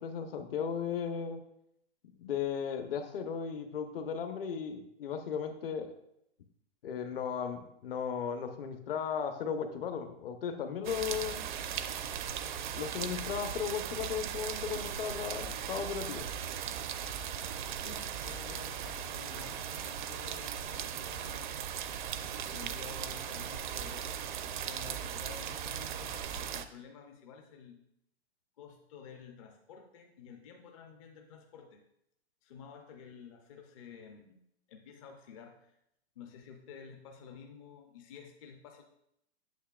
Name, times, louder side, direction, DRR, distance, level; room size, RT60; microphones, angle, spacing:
voice 1, 0.0-1.4 2.2-5.9 6.8-11.4 12.7-16.3, left 7 dB, 60° left, 7 dB, 0.9 m, -36 dB
sound 1, 10.8-26.6, right 9 dB, 45° right, 0.5 m, -38 dB
voice 2, 17.8-21.5 22.5-27.8 28.6-31.8 32.4-34.4 34.7-35.7 36.2-38.8, left 6 dB, 30° left, 3 dB, 0.5 m, -51 dB
8.3 x 6.5 x 2.3 m, 0.77 s
hypercardioid pair, 155°, 33 cm